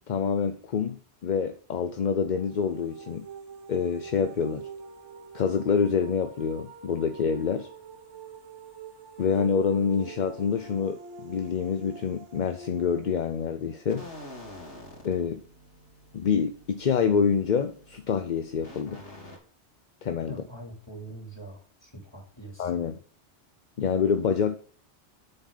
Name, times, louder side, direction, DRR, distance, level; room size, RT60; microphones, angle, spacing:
voice 1, 0.0-3.3 3.7-4.7 5.3-7.7 9.2-14.1 15.0-15.4 16.1-19.0 20.0-20.4 22.6-23.0 23.8-24.6, left 6 dB, 50° left, 0.7 m, -27 dB
sound 1, 2.1-14.9, right 5 dB, 85° right, 1.5 m, -46 dB
sound 2, 13.9-19.4, left 1 dB, 75° left, 3.3 m, -47 dB
voice 2, 20.3-22.8, right 2 dB, 20° left, 2.9 m, -44 dB
8.1 x 7.0 x 3.9 m
omnidirectional pair, 1.2 m